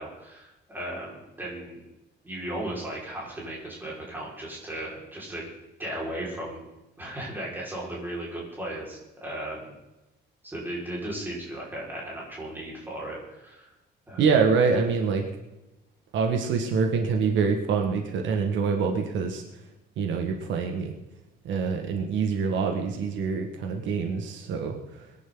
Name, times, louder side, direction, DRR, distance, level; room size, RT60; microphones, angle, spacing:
voice 1, 0.0-1.8 2.2-5.4 5.8-6.6 7.0-9.8 10.4-13.7 14.1-14.3, right 1 dB, 10° right, -5 dB, 5.3 m, -36 dB
voice 2, 14.2-15.2 16.1-19.4 20.0-20.9 21.5-24.8, right 5 dB, 75° right, 3 dB, 1.9 m, -25 dB
22.5 x 11.0 x 4.0 m, 0.97 s
cardioid pair, 180°, 19 cm